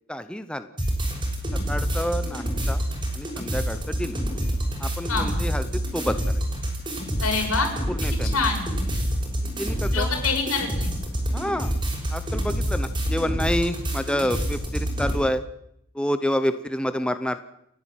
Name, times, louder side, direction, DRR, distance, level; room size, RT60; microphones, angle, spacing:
voice 1, 0.1-0.7 1.7-2.8 3.1-4.2 4.8-6.4 7.9-8.4 9.4-10.1 11.3-11.7 12.1-15.4 15.9-17.5, equal, 5° left, 10 dB, 0.9 m, -28 dB
sound 1, 0.8-15.2, equal, 20° right, 6.2 m, -27 dB
voice 2, 7.2-7.7 8.3-8.7 9.9-10.9, left 4 dB, 90° left, 2 dB, 6.8 m, -25 dB
30.0 x 10.5 x 9.1 m, 0.76 s
head